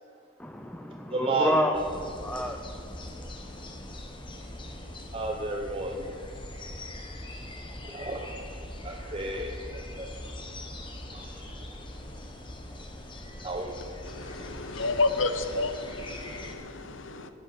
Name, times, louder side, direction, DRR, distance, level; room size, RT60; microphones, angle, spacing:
voice 1, 0.4-4.0, equal, 5° left, 4 dB, 0.5 m, -31 dB
voice 2, 1.1-1.6 2.3-2.4 5.1-6.1 7.8-8.3 8.8-10.2 11.0-11.6 13.4-13.9, right 3 dB, 30° right, 1 dB, 0.8 m, -33 dB
sound 1, 1.7-16.5, left 1 dB, 25° left, 1.1 m, -42 dB
voice 3, 14.0-17.3, left 3 dB, 80° left, 9 dB, 0.9 m, -30 dB
15.5 x 9.1 x 5.7 m, 2.4 s
head